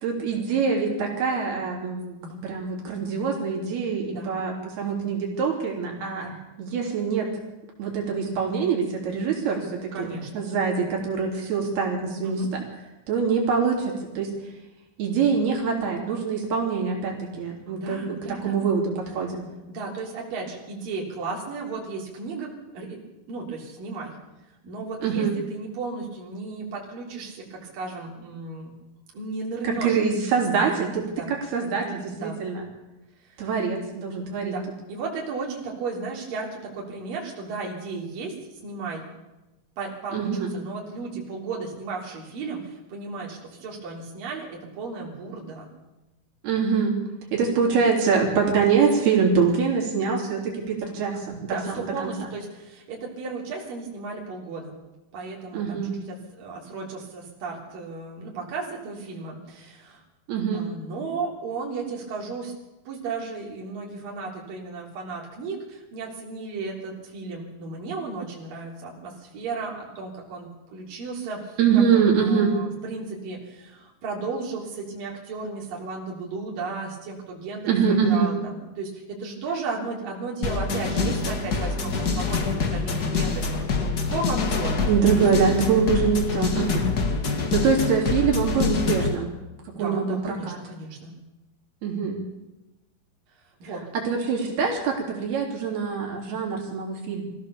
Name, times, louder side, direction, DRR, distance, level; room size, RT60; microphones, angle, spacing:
voice 1, 0.0-6.3 6.6-7.3 7.8-10.1 10.4-12.6 13.1-14.3 15.0-19.5 25.0-25.3 29.6-32.7 33.4-34.5 40.1-40.5 46.4-47.0 47.3-52.1 55.5-55.9 60.3-60.6 71.6-72.5 77.7-78.3 84.8-86.9 87.5-89.3 89.8-90.6 91.8-92.2 93.9-97.2, right 5 dB, 85° right, -1 dB, 5.4 m, -24 dB
voice 2, 4.1-4.4 6.1-6.4 9.9-10.5 12.2-12.5 17.7-18.6 19.7-23.0 23.3-24.2 24.6-28.7 29.1-30.0 31.1-31.3 32.1-32.4 33.2-33.7 34.4-38.4 38.6-39.0 39.8-45.7 51.5-54.7 55.1-60.0 60.5-62.5 62.8-84.8 85.4-85.5 89.7-91.1 93.6-93.8, right 4 dB, 65° right, -2 dB, 5.0 m, -34 dB
sound 1, 80.4-89.2, left 4 dB, 40° left, 1.4 m, -25 dB
24.0 x 15.5 x 7.0 m, 1.0 s
omnidirectional pair, 4.4 m